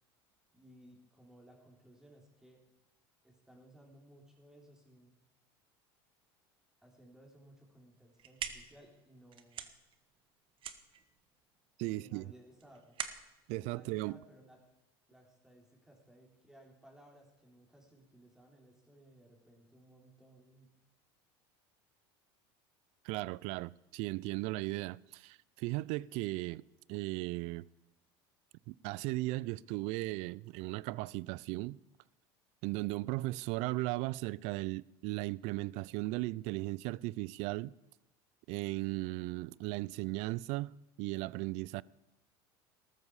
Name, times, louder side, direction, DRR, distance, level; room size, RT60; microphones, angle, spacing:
voice 1, 0.5-2.6 3.2-5.2 6.8-9.7 11.9-13.0 13.7-14.6 15.1-20.7, right 1 dB, 5° right, 3.7 m, -60 dB
sound 1, 7.9-14.8, right 9 dB, 45° right, 1.2 m, -46 dB
voice 2, 11.8-12.3 13.5-14.2 23.0-26.6 26.9-27.7 28.7-31.8 32.6-37.7 38.5-41.8, right 20 dB, 65° right, 0.4 m, -37 dB
14.0 x 13.5 x 4.8 m
supercardioid pair, 100°, 13 cm